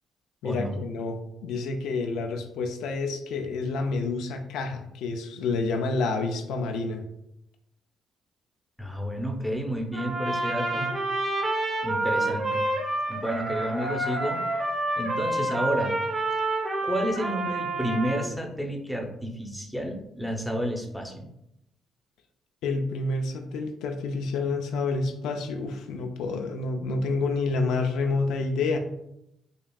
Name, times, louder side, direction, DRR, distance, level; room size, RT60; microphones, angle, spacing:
voice 1, 0.4-7.0 22.6-28.8, left 3 dB, 90° left, 5 dB, 0.4 m, -29 dB
voice 2, 8.8-10.9 11.8-12.6 13.1-14.4 15.0-15.9 16.8-21.3, equal, ahead, 1 dB, 0.7 m, -30 dB
Trumpet, 9.9-18.3, right 2 dB, 30° right, 1.0 m, -28 dB
5.2 x 2.4 x 2.3 m, 0.81 s
cardioid pair, 90°, 0 cm